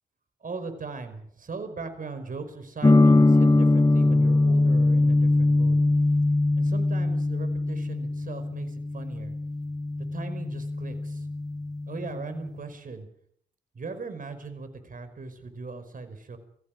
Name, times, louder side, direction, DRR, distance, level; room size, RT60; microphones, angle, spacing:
voice 1, 0.4-5.8 6.6-9.3 10.1-11.3 11.9-13.1 13.7-16.4, right 4 dB, 50° right, 9 dB, 5.2 m, -39 dB
sound 1, 2.8-12.6, left 2 dB, 20° left, 1.4 m, -22 dB
22.5 x 15.5 x 7.4 m, 0.64 s
hypercardioid pair, 45°, 18 cm